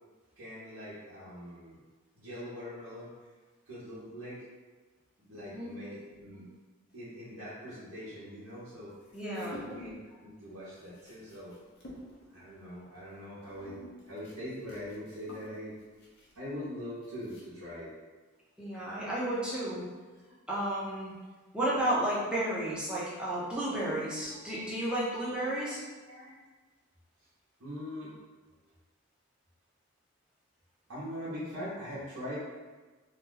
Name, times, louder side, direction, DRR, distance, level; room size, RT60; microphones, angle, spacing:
voice 1, 0.4-1.8 2.1-3.1 3.7-4.5 5.2-6.4 6.9-9.0 9.4-11.6 12.3-15.7 16.3-17.9 24.3-24.4 26.1-26.3 27.6-28.1 30.9-32.4, equal, 85° right, -11 dB, 0.9 m, -42 dB
voice 2, 5.3-5.7 9.1-9.6 18.6-19.9 20.5-21.1 21.5-25.8, right 1 dB, 5° right, -8 dB, 0.7 m, -32 dB
sound 1, 8.9-10.1 10.4-17.8, equal, 55° left, 0.7 m, -51 dB
2.7 x 2.3 x 3.8 m, 1.3 s
head